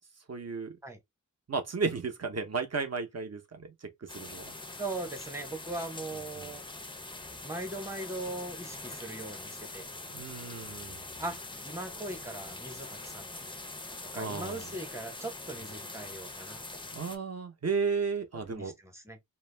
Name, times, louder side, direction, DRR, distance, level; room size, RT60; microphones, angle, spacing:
voice 1, 0.3-0.7 1.5-4.5 6.4-6.5 10.1-11.0 14.1-14.7 16.3-16.6 16.9-18.7, right 5 dB, 50° right, 0.7 m, -34 dB
sound 1, 4.1-17.2, left 2 dB, 15° left, 0.4 m, -43 dB
voice 2, 4.8-6.6 7.4-9.9 11.2-13.6 14.0-16.9 18.5-19.2, right 2 dB, 10° right, 0.9 m, -40 dB
2.3 x 2.1 x 3.2 m
wide cardioid pair, 50°, 34 cm